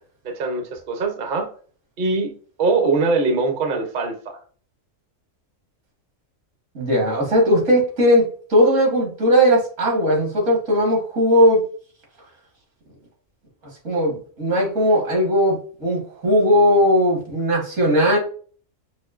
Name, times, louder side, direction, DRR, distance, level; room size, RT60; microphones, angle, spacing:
voice 1, 0.2-1.5 2.0-2.3 2.6-4.4, right 3 dB, 50° right, 4 dB, 0.7 m, -22 dB
voice 2, 6.8-8.3 8.5-11.6 13.8-18.2, equal, 70° right, -1 dB, 1.9 m, -18 dB
5.5 x 2.6 x 2.4 m, 0.44 s
omnidirectional pair, 1.4 m